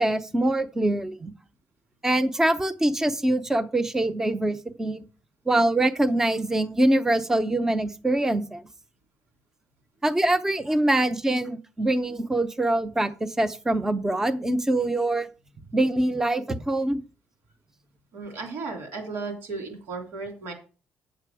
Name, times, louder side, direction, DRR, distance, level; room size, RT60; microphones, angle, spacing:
voice 1, 0.0-1.3 2.0-5.0 5.5-8.6 10.0-15.3 15.7-17.0, right 1 dB, 10° right, 12 dB, 0.7 m, -24 dB
voice 2, 18.1-20.5, right 4 dB, 80° right, 4 dB, 3.1 m, -35 dB
8.8 x 7.6 x 4.7 m, 0.35 s
cardioid pair, 130°, 4 cm